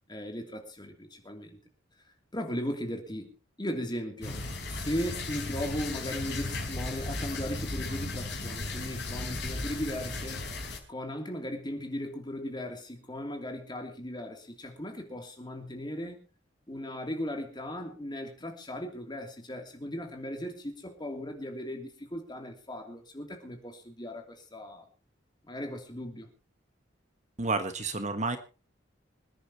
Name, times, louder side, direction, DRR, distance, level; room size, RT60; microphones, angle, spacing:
voice 1, 0.1-1.6 2.3-3.3 3.6-4.4 4.7-10.5 10.9-16.2 16.7-24.9 25.5-26.3, left 1 dB, 25° left, 4 dB, 2.9 m, -37 dB
sound 1, 4.2-10.8, left 2 dB, 60° left, 4.6 m, -35 dB
voice 2, 27.4-28.4, right 3 dB, 40° right, 9 dB, 1.4 m, -30 dB
26.0 x 10.0 x 3.0 m, 0.35 s
head